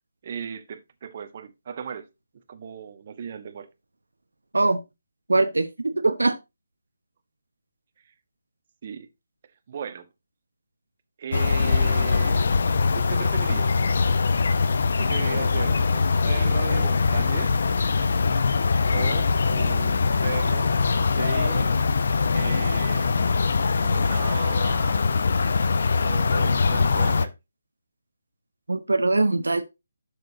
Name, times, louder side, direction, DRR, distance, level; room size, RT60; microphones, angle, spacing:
voice 1, 0.2-2.1 2.5-3.7 8.8-9.1 9.7-10.1 11.2-12.5 12.9-14.0 15.0-17.5 18.9-20.7 21.2-21.8 22.3-23.1 23.8-25.0 26.0-27.3, right 7 dB, 40° right, 1.2 m, -36 dB
voice 2, 5.3-6.4 28.7-29.6, right 2 dB, 75° right, 1.0 m, -22 dB
sound 1, 11.3-27.3, left 4 dB, 55° left, 0.7 m, -22 dB
12.0 x 6.5 x 2.8 m
figure-of-eight pair, 145°, 0 cm